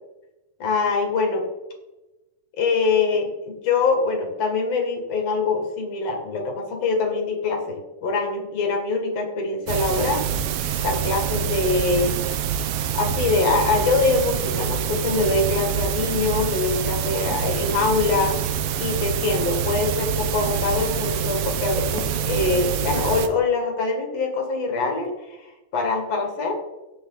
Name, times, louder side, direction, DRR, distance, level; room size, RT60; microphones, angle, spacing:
voice 1, 0.6-1.4 2.6-10.3 10.8-12.2 12.9-18.4 18.8-25.5 25.7-26.6, left 4 dB, 55° left, 2 dB, 3.0 m, -24 dB
sound 1, 9.7-23.3, right 8 dB, 85° right, 1.3 m, -26 dB
16.5 x 6.4 x 4.0 m, 1.0 s
omnidirectional pair, 3.6 m